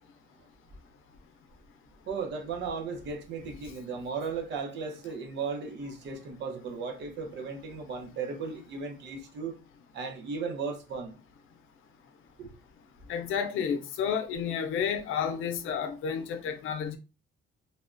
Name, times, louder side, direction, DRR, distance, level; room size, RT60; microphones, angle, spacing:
voice 1, 2.1-9.6 9.9-11.2 12.4-12.5, right 5 dB, 65° right, 0.7 m, -36 dB
voice 2, 13.1-17.0, left 7 dB, 85° left, 0.5 m, -31 dB
3.4 x 2.1 x 2.5 m
cardioid pair, 170°, 20 cm